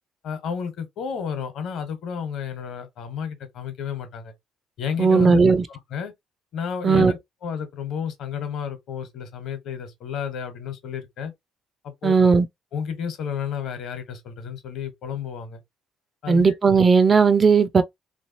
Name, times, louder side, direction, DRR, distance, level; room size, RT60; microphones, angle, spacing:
voice 1, 0.2-4.3 4.8-5.4 5.7-6.1 6.5-11.3 11.8-12.1 12.7-15.6 16.2-16.5, left 7 dB, 55° left, 1.2 m, -31 dB
voice 2, 5.0-5.6 6.8-7.1 12.0-12.5 16.3-17.8, right 5 dB, 25° right, 0.4 m, -16 dB
3.2 x 3.0 x 2.8 m
cardioid pair, 165°, 0 cm